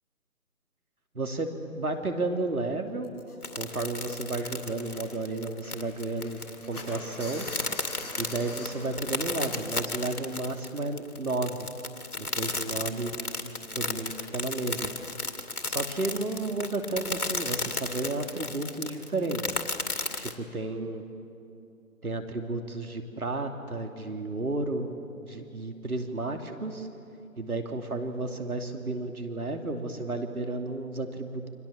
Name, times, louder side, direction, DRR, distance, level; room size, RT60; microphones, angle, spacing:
voice 1, 1.1-3.1 3.5-6.4 6.7-7.5 8.2-11.7 12.2-13.1 13.4-14.9 15.6-19.6 20.1-21.1 22.0-26.9 27.4-31.5, right 2 dB, 75° right, 4 dB, 2.9 m, -32 dB
sound 1, 1.8-1.9 2.2-2.4 3.0-4.2 4.5-9.6, left 2 dB, 10° left, 7.6 m, -44 dB
sound 2, 3.4-20.3, left 2 dB, 85° left, 2.4 m, -34 dB
29.5 x 25.0 x 7.3 m, 2.7 s
figure-of-eight pair, 155°, 44 cm